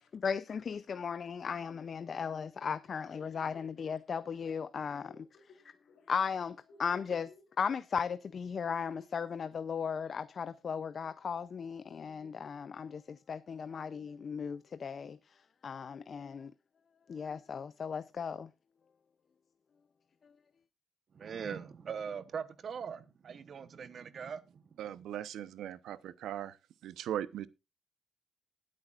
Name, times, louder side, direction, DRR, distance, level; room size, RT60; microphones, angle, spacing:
voice 1, 0.1-5.1 6.1-7.3 7.6-16.5 17.1-18.5, left 6 dB, 40° left, 0.5 m, -36 dB
voice 2, 5.1-6.2 6.7-6.8 7.2-7.4, left 4 dB, 70° left, 3.4 m, -60 dB
voice 3, 21.1-24.8, right 6 dB, 45° right, 1.0 m, -41 dB
voice 4, 24.8-26.6 26.8-27.5, right 11 dB, 85° right, 0.8 m, -39 dB
19.5 x 8.6 x 2.4 m
cardioid pair, 150°, 0 cm